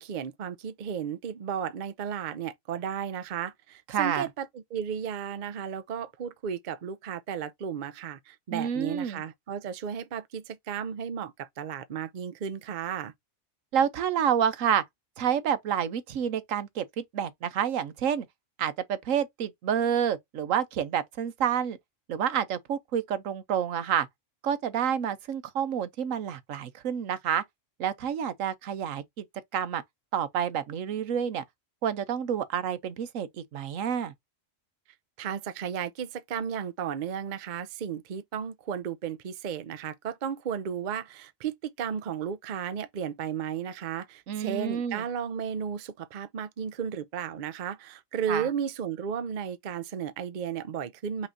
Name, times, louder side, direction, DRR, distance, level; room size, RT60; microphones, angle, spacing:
voice 1, 0.0-13.1 35.2-51.3, right 8 dB, 50° right, 0.6 m, -34 dB
voice 2, 3.9-4.3 8.5-9.2 13.7-14.8 15.2-18.2 18.6-21.8 22.1-24.1 24.4-27.4 27.8-29.2 29.5-29.8 30.1-31.4 31.8-34.1 44.3-45.0 48.3-48.5, right 8 dB, 80° right, 1.2 m, -29 dB
5.6 x 3.1 x 2.6 m
omnidirectional pair, 1.3 m